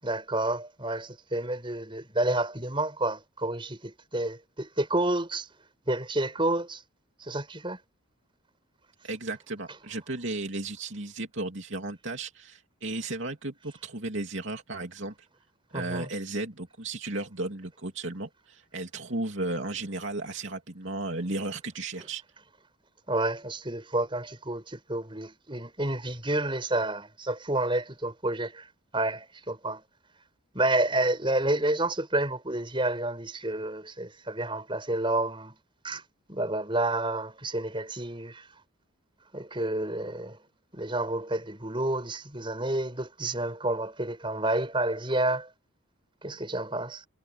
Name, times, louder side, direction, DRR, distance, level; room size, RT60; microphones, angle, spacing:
voice 1, 0.0-5.5 5.9-6.8 7.2-7.8 15.7-16.1 23.1-28.7 28.9-29.8 30.5-35.6 35.8-36.0 36.3-38.5 39.3-40.4 40.7-45.5 46.2-47.1, right 2 dB, 25° right, 6.1 m, -29 dB
voice 2, 9.0-15.1 15.7-22.2, right 2 dB, 55° right, 3.2 m, -34 dB
head